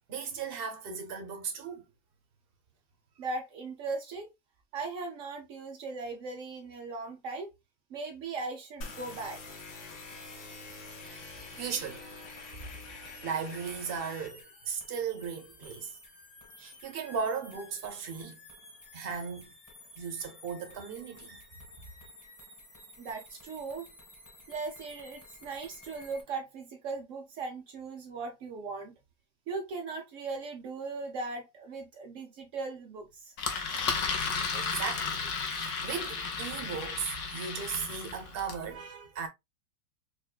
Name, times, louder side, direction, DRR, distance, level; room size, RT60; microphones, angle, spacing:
voice 1, 0.1-1.8 10.7-10.8 11.1-12.0 13.2-14.4 14.7-15.9 16.6-18.4 18.9-19.5 20.0-21.4 34.4-39.3, right 6 dB, 50° right, 0.7 m, -37 dB
voice 2, 3.2-4.3 4.7-7.5 7.9-9.4 23.0-23.9 24.5-28.9 29.5-33.3, right 3 dB, 85° right, 0.6 m, -38 dB
sound 1, 8.8-14.3, left 3 dB, 85° left, 2.0 m, -46 dB
sound 2, 8.8-26.2, left 1 dB, 10° left, 0.9 m, -53 dB
Engine, 33.4-38.7, left 5 dB, 60° left, 0.8 m, -33 dB
5.2 x 2.4 x 2.3 m
omnidirectional pair, 2.1 m